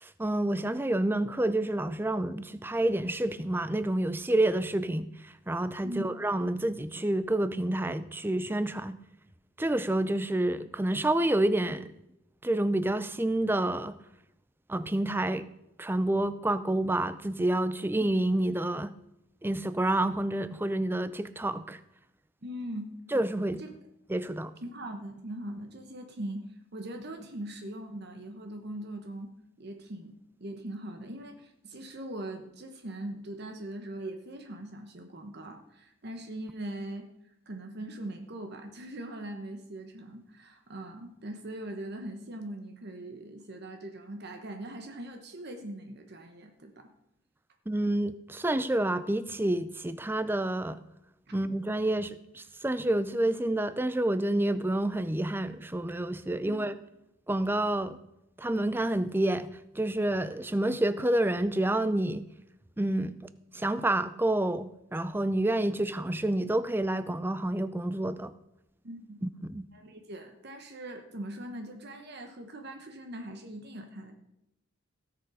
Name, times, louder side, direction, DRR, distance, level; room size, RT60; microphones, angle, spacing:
voice 1, 0.0-9.0 9.6-11.9 12.4-14.0 14.7-15.5 15.8-18.9 19.4-21.8 23.1-23.6 24.1-24.5 47.7-50.8 51.3-56.7 57.3-58.0 58.4-59.5 59.8-62.2 62.8-63.3 63.5-68.3 69.2-69.6, right 1 dB, 10° right, 0.4 m, -28 dB
voice 2, 22.4-22.9 23.6-23.7 24.6-29.3 29.6-37.0 37.5-46.9 56.5-56.6 68.8-69.2 69.7-74.1, right 1 dB, 50° right, 1.0 m, -41 dB
17.0 x 6.9 x 4.9 m
head